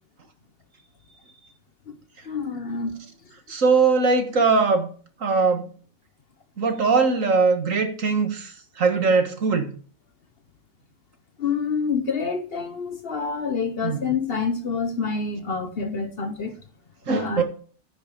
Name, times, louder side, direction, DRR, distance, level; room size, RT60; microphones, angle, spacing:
voice 1, 2.2-3.1 11.4-16.6 17.2-17.4, left 5 dB, 50° left, 1.0 m, -27 dB
voice 2, 3.5-4.9 5.2-5.7 6.6-9.7 13.8-14.0 17.1-17.4, right 4 dB, 65° right, 1.9 m, -21 dB
9.7 x 6.2 x 6.6 m
omnidirectional pair, 1.5 m